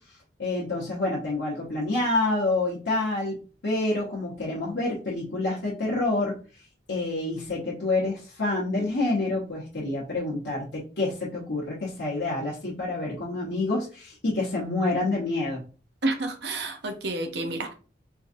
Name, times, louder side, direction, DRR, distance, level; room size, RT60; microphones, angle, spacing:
voice 1, 0.4-3.3 3.6-6.3 6.9-15.6, left 2 dB, 70° left, -6 dB, 1.0 m, -27 dB
voice 2, 16.0-17.7, right 2 dB, 65° right, 6 dB, 0.6 m, -29 dB
4.6 x 2.6 x 2.6 m, 0.37 s
head